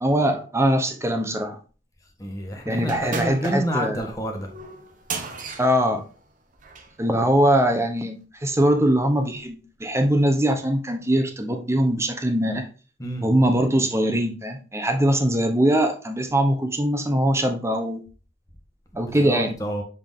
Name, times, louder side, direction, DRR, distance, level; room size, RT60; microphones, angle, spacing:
voice 1, 0.0-1.6 2.7-4.0 5.6-6.0 7.0-12.7 13.2-18.0 18.9-19.5, right 1 dB, 15° right, 0.8 m, -22 dB
voice 2, 2.2-4.5 13.0-13.2 18.9-19.8, equal, 20° left, 1.5 m, -29 dB
sound 1, 2.8-7.0, right 4 dB, 45° right, 0.9 m, -36 dB
7.2 x 4.0 x 3.6 m
head